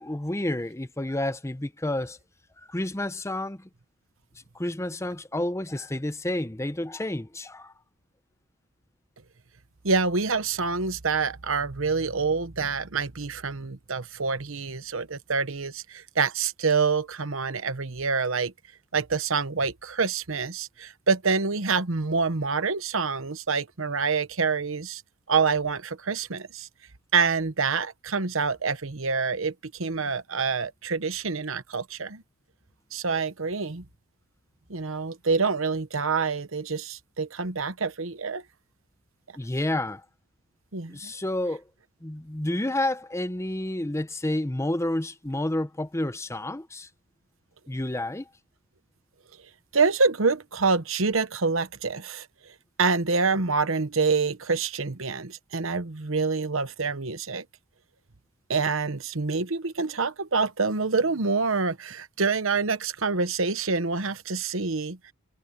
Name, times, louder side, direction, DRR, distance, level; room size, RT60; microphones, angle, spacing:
voice 1, 0.0-2.2 2.7-3.7 4.5-7.7 39.4-40.0 40.9-41.6 42.0-46.9 47.7-48.3, left 1 dB, 15° left, 0.7 m, -30 dB
voice 2, 9.8-18.5 18.9-25.0 25.3-26.7 27.1-32.2 32.9-33.8 34.7-38.4 40.7-41.1 49.7-52.3 52.8-57.4 58.5-65.1, right 4 dB, 70° right, 1.1 m, -26 dB
head